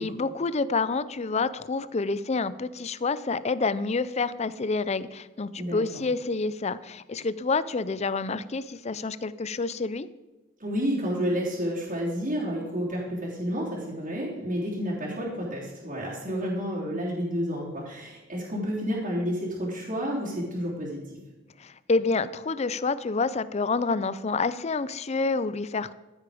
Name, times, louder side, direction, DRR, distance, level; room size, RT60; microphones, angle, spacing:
voice 1, 0.0-10.1 21.6-25.9, left 4 dB, 30° left, 16 dB, 0.5 m, -28 dB
voice 2, 10.6-21.2, equal, 40° right, -6 dB, 3.3 m, -30 dB
14.5 x 8.5 x 5.0 m, 1.1 s
head